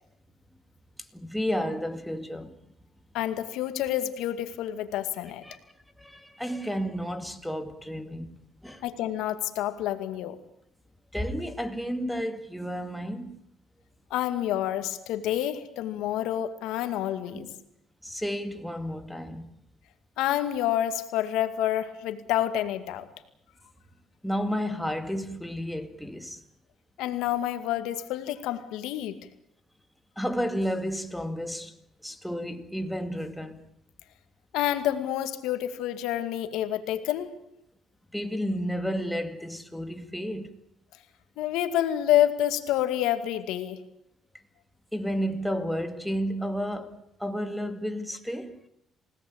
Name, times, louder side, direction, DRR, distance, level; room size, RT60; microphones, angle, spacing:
voice 1, 1.1-2.5 5.4-5.6 6.0-8.4 8.6-8.8 11.1-13.4 17.3-17.5 18.0-19.6 24.2-26.4 30.2-31.7 32.0-33.6 38.1-40.5 44.9-48.6, equal, ahead, 2.2 m, -32 dB
voice 2, 3.1-5.4 8.8-10.4 14.1-17.5 20.2-23.1 27.0-29.2 34.5-37.3 41.4-43.8, left 12 dB, 85° left, 2.2 m, -28 dB
28.5 x 17.5 x 8.8 m
cardioid pair, 115°, 0 cm